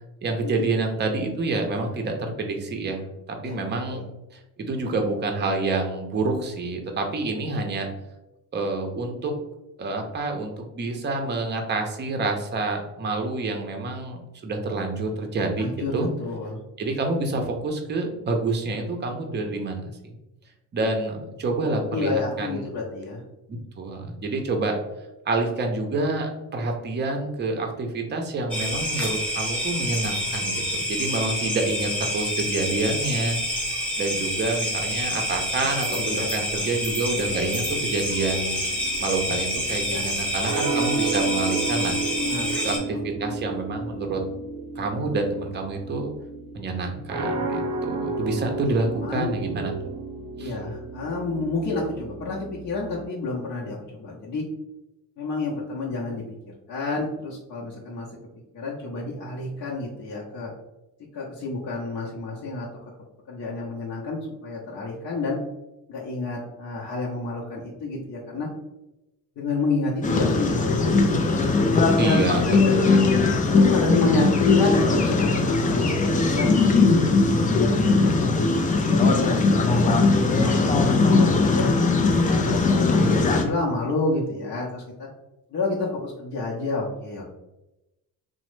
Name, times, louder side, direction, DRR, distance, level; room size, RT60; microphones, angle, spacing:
voice 1, 0.2-3.0 3.4-4.0 4.6-7.9 8.5-9.3 9.8-16.1 16.8-19.8 20.7-22.7 23.5-24.8 25.2-33.4 34.0-38.5 39.0-42.0 42.6-44.2 44.8-46.1 46.5-49.7 50.4-50.6 72.0-73.0, right 3 dB, 30° right, 3 dB, 0.6 m, -28 dB
voice 2, 15.6-16.6 21.9-23.2 35.9-36.7 39.9-40.0 42.2-42.6 42.9-43.0 47.5-47.8 49.0-49.4 50.4-54.4 55.2-56.2 56.7-58.1 58.5-60.5 61.1-62.7 63.3-65.4 65.9-68.5 69.4-71.4 71.9-72.1 72.4-73.1 73.5-78.1 78.8-79.4 79.7-81.7 82.2-85.1 85.5-87.2, left 3 dB, 50° left, -5 dB, 0.7 m, -29 dB
sound 1, 28.5-42.8, equal, 5° left, 0.9 m, -28 dB
sound 2, 37.2-53.1, right 4 dB, 85° right, 0.6 m, -32 dB
sound 3, 70.0-83.4, left 3 dB, 20° left, 0.4 m, -20 dB
2.9 x 2.1 x 3.1 m, 0.96 s
cardioid pair, 90°, 38 cm